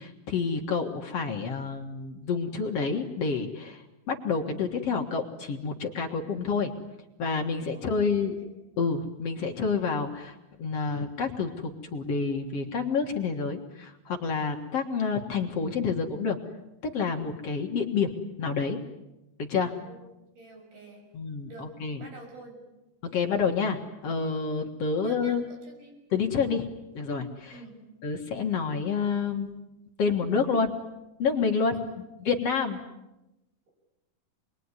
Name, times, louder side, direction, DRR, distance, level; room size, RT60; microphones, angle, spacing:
voice 1, 0.0-3.8 4.1-6.7 7.2-8.3 8.8-16.4 16.8-18.1 18.4-18.8 19.4-19.7 21.1-22.0 23.0-25.5 26.1-26.7 26.9-27.5 28.0-29.6 30.0-30.7 31.2-31.8 32.3-32.8, left 5 dB, 50° left, 2 dB, 2.3 m, -28 dB
voice 2, 8.2-8.5 19.8-20.0 20.3-21.0 21.5-21.7 22.0-22.5 24.9-25.9 27.5-27.8 31.7-32.0, right 3 dB, 90° right, 1 dB, 8.5 m, -48 dB
27.0 x 22.0 x 9.8 m, 0.98 s
omnidirectional pair, 4.3 m